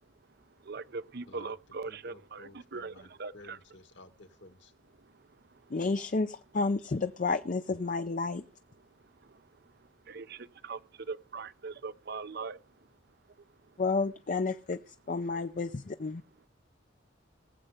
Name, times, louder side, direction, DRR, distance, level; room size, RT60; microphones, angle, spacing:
voice 1, 0.4-3.6 5.0-5.7 8.8-12.9 13.3-13.4 13.6-13.8, right 4 dB, 55° right, 0.6 m, -42 dB
voice 2, 1.8-3.1 3.3-4.7, left 2 dB, 60° left, 1.7 m, -53 dB
voice 3, 5.7-8.5 13.8-16.2, left 3 dB, 40° left, 0.5 m, -31 dB
19.0 x 7.8 x 4.9 m
head